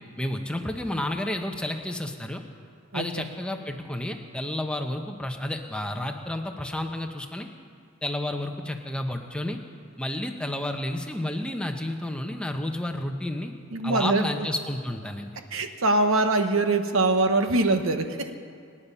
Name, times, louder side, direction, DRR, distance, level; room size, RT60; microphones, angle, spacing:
voice 1, 0.2-2.4 2.9-7.5 8.0-9.6 10.0-13.5 13.8-15.4, left 1 dB, 5° left, 4 dB, 0.9 m, -31 dB
voice 2, 13.7-14.3 15.5-18.3, right 2 dB, 65° right, 7 dB, 1.2 m, -23 dB
25.5 x 9.9 x 5.6 m, 2.3 s
head